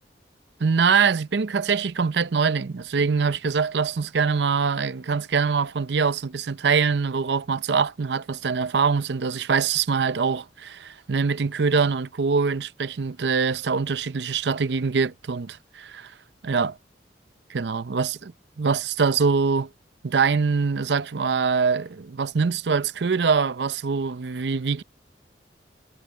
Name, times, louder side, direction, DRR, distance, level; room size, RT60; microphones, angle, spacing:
voice 1, 0.6-16.1 16.4-16.8 17.5-18.3 18.6-19.7 20.0-24.8, right 5 dB, 75° right, 0.6 m, -23 dB
head